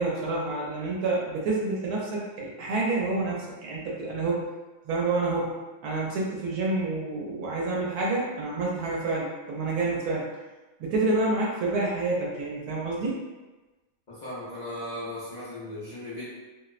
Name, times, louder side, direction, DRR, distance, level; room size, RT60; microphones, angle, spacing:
voice 1, 0.0-4.5 4.9-5.6 5.8-10.3 10.8-13.2, right 2 dB, 85° right, -4 dB, 1.1 m, -28 dB
voice 2, 14.1-16.3, left 1 dB, 55° left, -10 dB, 0.4 m, -37 dB
2.7 x 2.0 x 2.3 m, 1.2 s
omnidirectional pair, 1.6 m